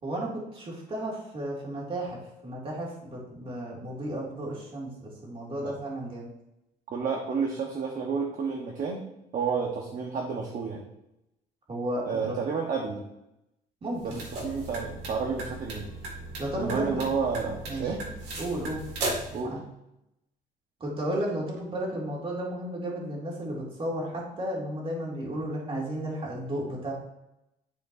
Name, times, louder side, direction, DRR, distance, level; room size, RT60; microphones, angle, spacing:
voice 1, 0.0-6.3 11.7-12.2 13.8-14.2 16.4-17.0 17.6-17.9 18.4-18.8 19.4-19.6 20.8-26.9, right 1 dB, 35° right, -3 dB, 2.5 m, -33 dB
voice 2, 6.9-9.1 9.3-10.8 12.1-13.0 14.0-15.9 16.6-18.0 19.3-19.6, right 5 dB, 50° right, 0 dB, 1.2 m, -30 dB
sound 1, 13.9-19.4, right 2 dB, 85° right, 2.2 m, -37 dB
11.5 x 4.3 x 2.6 m, 0.87 s
cardioid pair, 110°, 17 cm